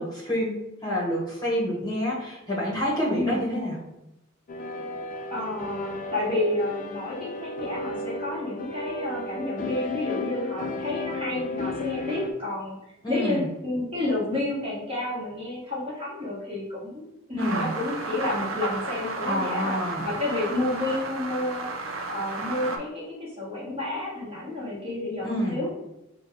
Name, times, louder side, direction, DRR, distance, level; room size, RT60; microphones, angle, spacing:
voice 1, 0.0-3.8 13.0-13.5 17.4-17.7 19.2-20.1 25.2-25.6, equal, 20° left, -6 dB, 1.1 m, -28 dB
sound 1, 4.5-12.3, left 2 dB, 40° left, 0.4 m, -33 dB
voice 2, 5.3-12.8 13.1-19.7 20.0-21.7 22.1-23.0 23.4-25.8, left 2 dB, 25° right, -7 dB, 1.5 m, -30 dB
sound 2, 17.4-22.8, right 3 dB, 75° right, 0.7 m, -33 dB
4.4 x 2.3 x 4.6 m, 0.91 s
head